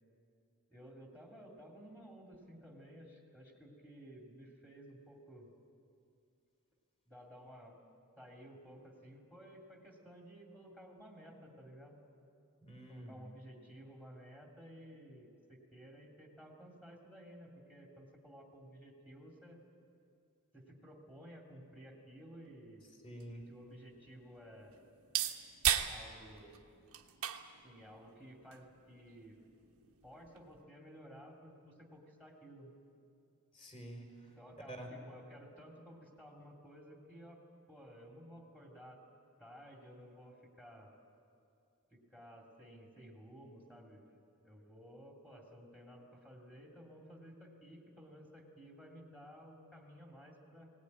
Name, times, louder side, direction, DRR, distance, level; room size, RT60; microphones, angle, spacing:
voice 1, 0.7-5.5 7.1-7.8 8.2-12.0 12.9-19.6 20.5-22.8 23.5-24.8 25.9-26.6 27.6-29.4 30.0-32.7 34.4-37.4 37.7-39.0 39.4-40.9 41.9-44.1 44.4-50.7, equal, 5° left, -1 dB, 2.9 m, -55 dB
voice 2, 12.6-13.2 23.0-23.4 33.5-34.3 34.7-34.9, right 1 dB, 25° left, 1 dB, 4.6 m, -48 dB
sound 1, 22.6-30.6, right 10 dB, 70° right, 1.3 m, -40 dB
19.5 x 18.5 x 9.8 m, 2.4 s
head